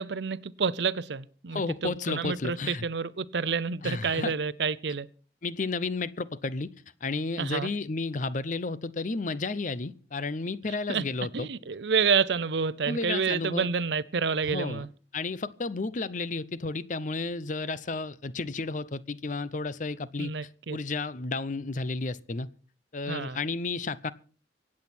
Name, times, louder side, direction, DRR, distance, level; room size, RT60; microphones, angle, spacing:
voice 1, 0.0-5.1 7.4-7.7 10.9-11.0 11.3-14.9 20.2-20.8 23.1-23.4, right 5 dB, 70° right, 0.7 m, -29 dB
voice 2, 1.5-2.8 3.8-4.3 5.4-6.7 7.0-11.5 12.9-13.7 14.5-14.9 15.1-20.3 20.7-22.5 22.9-24.1, left 3 dB, 45° left, 0.6 m, -32 dB
24.5 x 8.5 x 4.4 m
head